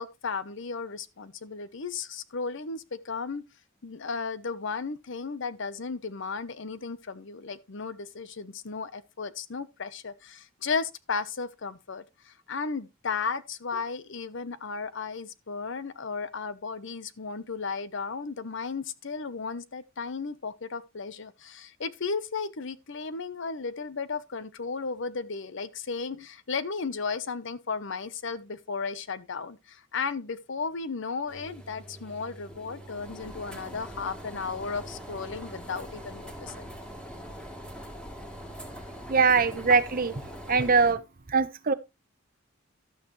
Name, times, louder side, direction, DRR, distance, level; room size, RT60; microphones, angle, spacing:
voice 1, 0.0-3.4 3.8-36.7, left 4 dB, 65° left, 0.8 m, -34 dB
sound 1, 31.3-40.9, equal, 5° left, 2.4 m, -42 dB
voice 2, 39.1-40.1 40.5-41.0 41.3-41.7, right 4 dB, 45° right, 0.9 m, -22 dB
12.0 x 8.7 x 3.2 m
head